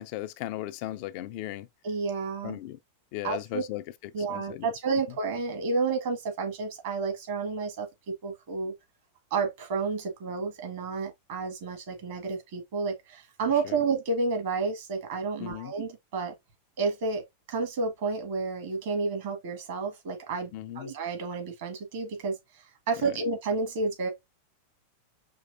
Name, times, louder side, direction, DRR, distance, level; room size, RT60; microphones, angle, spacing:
voice 1, 0.0-1.7 2.4-2.8 3.1-3.8 4.3-4.7 13.7-13.8 15.4-15.7 20.5-20.9 23.0-23.2, left 14 dB, 45° left, 0.5 m, -36 dB
voice 2, 1.8-2.6 3.2-3.6 4.1-7.9 8.2-8.7 9.3-16.3 16.8-17.2 17.5-22.4 22.9-24.1, right 4 dB, 50° right, 1.8 m, -30 dB
5.4 x 3.2 x 2.6 m
figure-of-eight pair, 90°, 0 cm